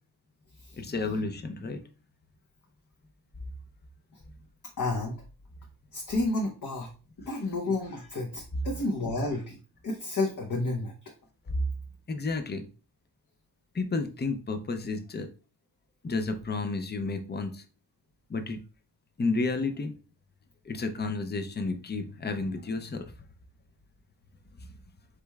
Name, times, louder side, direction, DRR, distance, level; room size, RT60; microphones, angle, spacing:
voice 1, 0.8-1.8 11.5-11.6 12.1-12.6 13.7-15.3 16.0-17.6 18.3-18.6 19.2-19.9 20.7-23.0, left 3 dB, 25° left, 7 dB, 0.5 m, -31 dB
voice 2, 4.8-5.1 5.9-6.9 7.3-9.6 9.8-11.1, left 2 dB, 50° left, 0 dB, 0.9 m, -31 dB
5.1 x 4.4 x 2.3 m, 0.35 s
wide cardioid pair, 170°, 41 cm